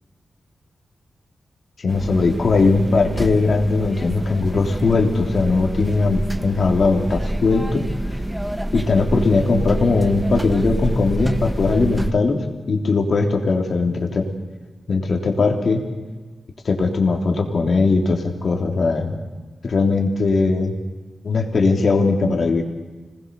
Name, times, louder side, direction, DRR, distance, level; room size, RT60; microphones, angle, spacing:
voice 1, 1.8-7.9 8.7-14.3 14.9-15.8 16.7-19.2 19.6-20.7 21.2-22.6, left 3 dB, 60° left, 2 dB, 3.4 m, -19 dB
sound 1, 1.9-12.1, right 1 dB, 5° right, 1.5 m, -27 dB
26.0 x 20.0 x 7.0 m, 1.4 s
cardioid pair, 75°, 0 cm